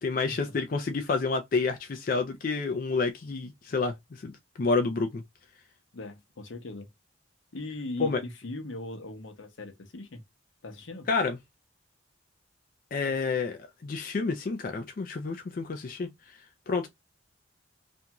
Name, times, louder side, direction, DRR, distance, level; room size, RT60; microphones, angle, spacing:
voice 1, 0.0-5.2 8.0-8.2 11.1-11.4 12.9-16.1 16.7-16.9, left 4 dB, 45° left, 0.4 m, -29 dB
voice 2, 5.9-6.9 7.5-10.2 10.6-11.1, left 2 dB, 85° left, 0.7 m, -39 dB
2.5 x 2.3 x 2.8 m
head